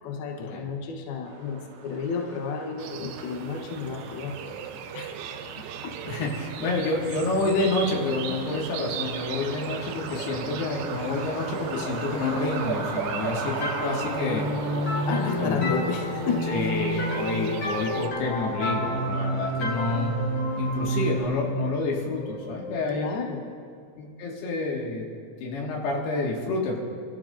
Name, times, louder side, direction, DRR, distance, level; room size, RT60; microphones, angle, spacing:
voice 1, 0.0-4.4 4.9-5.4 5.8-5.9 15.0-16.5 22.9-23.5, left 5 dB, 80° left, 2 dB, 2.2 m, -32 dB
Truck, 1.3-21.3, right 5 dB, 65° right, 3.3 m, -38 dB
sound 1, 2.8-18.1, right 8 dB, 85° right, 2.9 m, -38 dB
voice 2, 6.0-14.5 15.4-15.8 16.5-20.1 20.6-23.2 24.0-25.1 25.4-26.8, left 3 dB, 65° left, -1 dB, 3.3 m, -29 dB
sound 2, 13.6-23.1, equal, 30° left, 3.7 m, -29 dB
29.0 x 13.0 x 2.5 m, 2.3 s
omnidirectional pair, 5.9 m